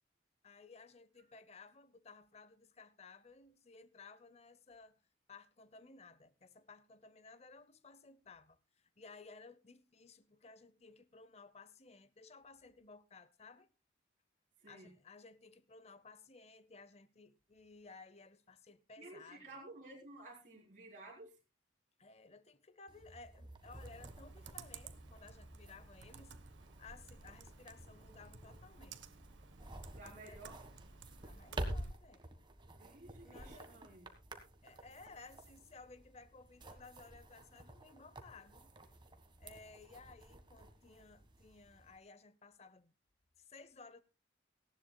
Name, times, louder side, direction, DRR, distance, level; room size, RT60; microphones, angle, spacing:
voice 1, 0.4-5.0 5.3-13.7 14.6-19.5 22.0-29.2 30.0-30.4 31.2-32.3 33.2-33.9 34.6-38.7 39.4-42.9 43.4-44.0, left 4 dB, 35° left, 0.7 m, -58 dB
voice 2, 14.6-14.9 19.0-21.4 29.9-30.6 32.8-34.1, right 2 dB, 45° right, 3.9 m, -54 dB
sound 1, 22.9-42.0, right 1 dB, 25° right, 1.5 m, -50 dB
Computer keyboard, 23.7-31.9, right 6 dB, 85° right, 1.0 m, -56 dB
18.0 x 15.5 x 2.3 m
head